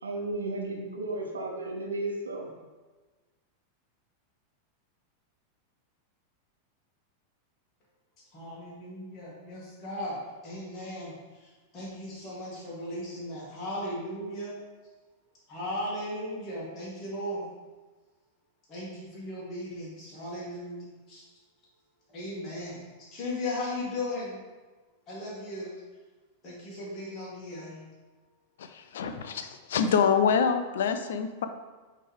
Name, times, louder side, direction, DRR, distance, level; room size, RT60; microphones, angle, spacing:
voice 1, 0.0-2.5, right 2 dB, 75° right, 0 dB, 1.1 m, -34 dB
voice 2, 8.3-11.1 11.4-14.6 15.5-17.5 18.7-21.2 22.1-24.4 25.1-25.7 26.4-27.8, left 1 dB, 30° left, -7 dB, 1.9 m, -37 dB
voice 3, 28.6-31.5, left 6 dB, 60° left, 9 dB, 0.5 m, -26 dB
8.4 x 3.3 x 3.5 m, 1.3 s
figure-of-eight pair, 90°, 0 cm